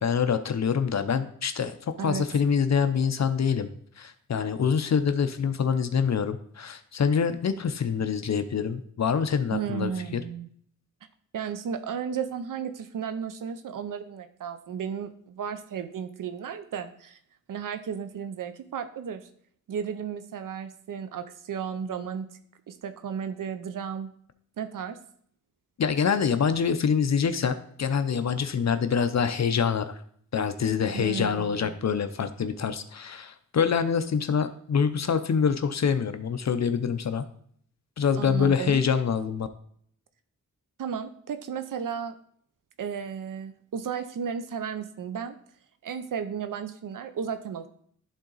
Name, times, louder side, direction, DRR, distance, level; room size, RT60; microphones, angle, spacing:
voice 1, 0.0-1.7 2.0-3.7 4.0-10.2 25.8-30.0 30.3-37.2 38.0-39.5, left 6 dB, 60° left, 10 dB, 0.6 m, -25 dB
voice 2, 9.5-10.5 11.3-17.2 17.5-19.3 19.7-22.4 22.7-24.1 24.6-25.0 30.9-31.8 38.2-38.8 40.8-42.2 42.8-45.4 45.8-47.7, right 7 dB, 85° right, 9 dB, 0.6 m, -34 dB
11.5 x 3.9 x 3.9 m, 0.62 s
wide cardioid pair, 85°, 31 cm